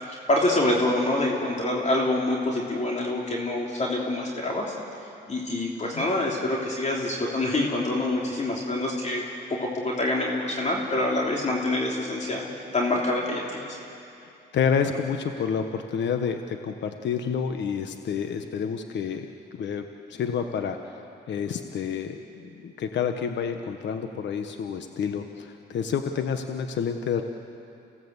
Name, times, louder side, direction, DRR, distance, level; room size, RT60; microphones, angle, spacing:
voice 1, 0.1-4.7 5.3-9.2 9.5-12.5 12.7-13.6, left 2 dB, 35° left, -2 dB, 3.4 m, -26 dB
voice 2, 14.2-19.3 19.5-27.2, left 7 dB, 65° left, 6 dB, 1.3 m, -29 dB
28.5 x 17.0 x 8.2 m, 2.7 s
cardioid pair, 90°, 20 cm